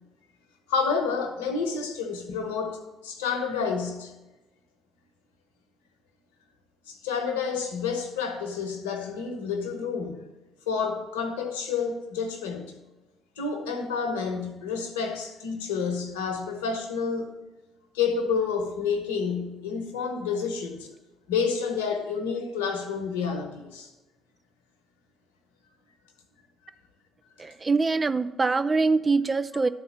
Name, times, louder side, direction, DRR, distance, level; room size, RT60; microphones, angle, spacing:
voice 1, 0.7-4.1 6.9-10.2 10.7-12.7 13.4-17.3 17.9-20.9 21.3-23.9, left 5 dB, 75° left, 0.9 m, -29 dB
voice 2, 27.4-29.7, right 4 dB, 30° right, 0.4 m, -24 dB
11.5 x 4.2 x 6.2 m
figure-of-eight pair, 50°, 0 cm